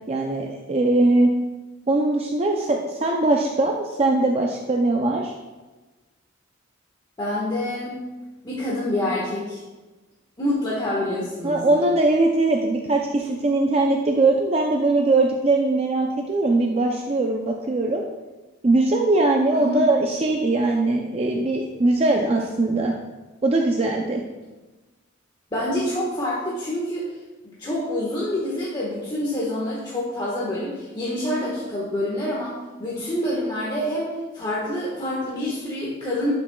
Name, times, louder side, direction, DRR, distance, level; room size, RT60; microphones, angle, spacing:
voice 1, 0.1-1.3 1.9-5.3 11.4-18.0 18.6-22.9 23.4-24.2, right 2 dB, 30° right, 1 dB, 0.5 m, -21 dB
voice 2, 7.2-8.0 8.4-9.6 10.4-11.8 19.5-19.8 25.5-27.0 27.4-32.5 32.8-36.3, left 1 dB, 25° left, -7 dB, 1.4 m, -27 dB
12.5 x 6.0 x 2.3 m, 1.2 s
head